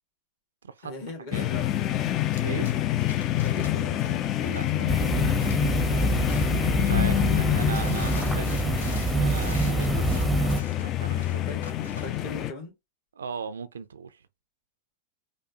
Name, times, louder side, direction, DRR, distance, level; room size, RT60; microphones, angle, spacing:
voice 1, 0.8-2.0 3.4-4.3 11.3-12.7, left 2 dB, 50° left, 1.9 m, -40 dB
sound 1, 1.3-12.5, left 13 dB, 35° left, 0.3 m, -27 dB
sound 2, 2.3-6.8 7.2-12.2, left 3 dB, 70° left, 0.9 m, -45 dB
voice 2, 2.4-2.7 4.4-6.0 6.8-8.6 9.1-10.5 10.8-11.7 13.2-14.2, right 6 dB, 70° right, 0.3 m, -38 dB
sound 3, 4.9-10.6, right 2 dB, ahead, 0.7 m, -26 dB
5.2 x 2.1 x 2.7 m
figure-of-eight pair, 90°, 0 cm